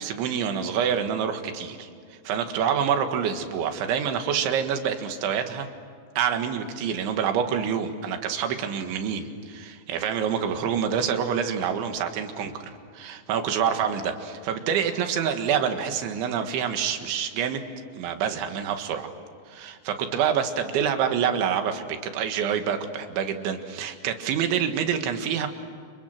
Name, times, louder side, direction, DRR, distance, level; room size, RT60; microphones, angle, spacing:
voice 1, 0.0-5.7 6.2-17.6 17.9-19.1 19.5-25.5, right 8 dB, 80° right, 6 dB, 4.1 m, -27 dB
29.5 x 29.0 x 6.6 m, 2.1 s
omnidirectional pair, 5.3 m